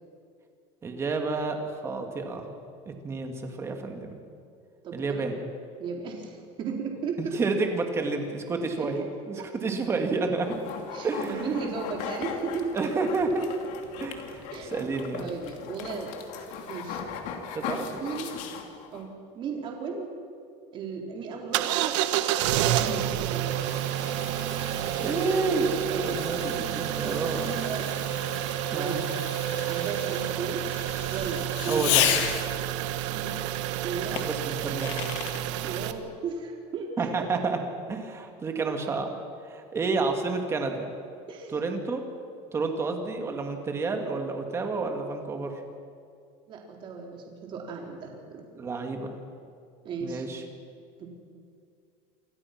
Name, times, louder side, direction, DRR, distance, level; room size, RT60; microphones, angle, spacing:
voice 1, 0.8-2.5 2.9-4.1 4.9-5.3 7.2-9.4 9.6-10.6 11.0-11.7 12.7-13.4 14.0-15.3 17.7-17.9 25.0-27.5 28.7-29.0 31.7-32.0 34.1-35.0 37.0-37.6 37.9-39.1 39.4-40.9 41.5-42.0 42.5-45.5 48.6-49.1 50.0-50.4, right 3 dB, 15° right, 4 dB, 2.3 m, -30 dB
voice 2, 4.8-5.4 5.8-7.4 8.8-9.0 9.3-9.4 10.9-13.0 14.5-14.7 15.2-16.1 16.7-17.0 18.0-18.3 18.9-20.1 20.7-22.0 22.4-23.6 25.9-26.2 27.0-27.9 28.7-29.1 29.6-30.7 31.1-32.2 33.1-33.4 33.8-34.3 35.6-37.3 41.3-41.6 46.5-48.4 49.8-50.2 51.0-51.1, right 5 dB, 30° right, 1 dB, 4.0 m, -35 dB
sound 1, 10.4-19.1, left 6 dB, 50° left, 2.7 m, -38 dB
sound 2, 21.5-35.9, right 12 dB, 85° right, 1.5 m, -29 dB
Fireworks, 22.8-32.7 34.2-35.4, left 10 dB, 75° left, 2.5 m, -34 dB
28.0 x 23.5 x 6.1 m, 2.4 s
cardioid pair, 175°, 15 cm